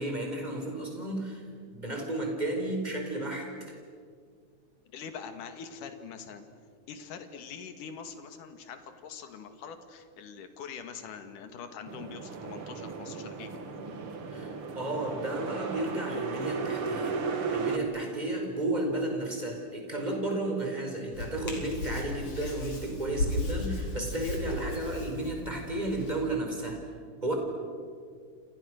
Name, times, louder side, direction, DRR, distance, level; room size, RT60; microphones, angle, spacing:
voice 1, 0.0-3.8 14.3-17.2 17.5-26.8 27.2-27.3, right 1 dB, 10° right, 2 dB, 4.9 m, -33 dB
voice 2, 4.9-6.5 6.9-13.6, left 6 dB, 75° left, 7 dB, 3.4 m, -44 dB
sound 1, 11.9-17.8, right 5 dB, 45° right, 2.4 m, -35 dB
Hands, 21.1-26.1, left 1 dB, 45° left, 5.5 m, -35 dB
29.5 x 28.5 x 6.5 m, 2.1 s
omnidirectional pair, 3.7 m